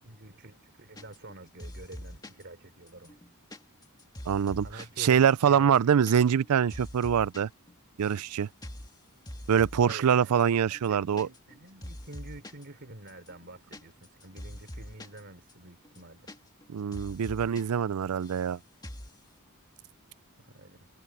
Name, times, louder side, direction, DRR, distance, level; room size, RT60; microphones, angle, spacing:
voice 1, 0.0-3.2 4.6-6.0 9.8-16.3 20.4-20.9, right 2 dB, 50° right, 3.5 m, -48 dB
sound 1, 1.0-1.3 1.6-2.4 2.9-5.0 5.3-5.4 5.6-6.1 6.4-7.4 7.7-8.3 8.6-8.9 9.3-10.1 10.4-10.5 10.7-11.6 11.8-12.6 13.1-15.2 15.5-15.6 15.8-16.7 16.9-17.6 17.9-18.5 18.8-19.2, left 1 dB, 20° left, 2.0 m, -44 dB
voice 2, 4.3-4.7 5.0-7.5 8.0-8.5 9.5-11.3 16.7-18.6, right 8 dB, 80° right, 0.4 m, -24 dB
head